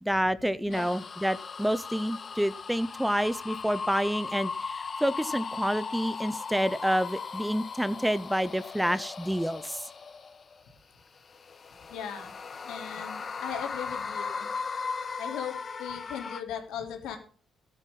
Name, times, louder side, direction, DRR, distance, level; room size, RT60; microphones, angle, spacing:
voice 1, 0.0-9.8, equal, 5° right, 17 dB, 0.6 m, -28 dB
sound 1, 0.7-10.6 11.2-16.4, left 5 dB, 40° left, 1.3 m, -38 dB
voice 2, 11.9-12.3 12.6-14.5 15.2-17.2, left 8 dB, 90° left, 4 dB, 2.9 m, -38 dB
13.5 x 8.4 x 5.4 m, 0.43 s
cardioid pair, 90°, 0 cm